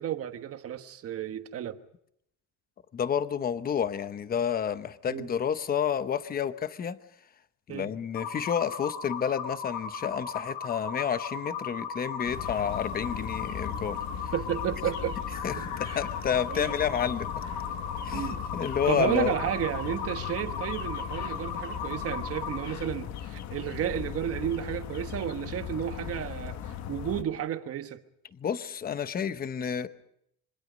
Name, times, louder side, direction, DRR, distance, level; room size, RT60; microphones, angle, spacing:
voice 1, 0.0-1.8 5.1-5.3 7.7-7.9 14.3-15.2 15.6-16.0 16.5-16.8 18.1-18.4 18.9-28.0, right 10 dB, 40° right, 1.4 m, -32 dB
voice 2, 2.9-7.0 7.7-14.0 14.2-14.3 15.4-17.3 18.0-19.3 28.3-29.9, left 8 dB, 25° left, 0.9 m, -30 dB
sound 1, 8.1-22.6, left 6 dB, 75° left, 4.0 m, -37 dB
sound 2, 12.3-27.2, left 9 dB, 50° left, 1.2 m, -38 dB
27.0 x 24.0 x 5.2 m
cardioid pair, 165°, 36 cm